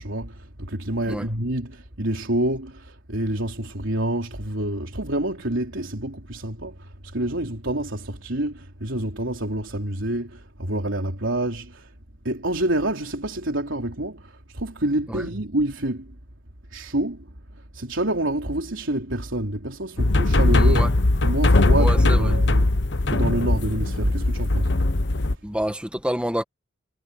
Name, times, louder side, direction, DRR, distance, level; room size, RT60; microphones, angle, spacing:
voice 1, 0.0-11.9 12.2-16.1 16.7-17.2 17.7-20.9 21.2-22.7 23.1-24.7, right 1 dB, 70° right, 3.4 m, -27 dB
sound 1, 20.0-25.3, left 2 dB, 55° left, 1.1 m, -19 dB
voice 2, 20.5-20.9 21.8-22.3 25.4-26.4, equal, 5° right, 1.9 m, -28 dB
head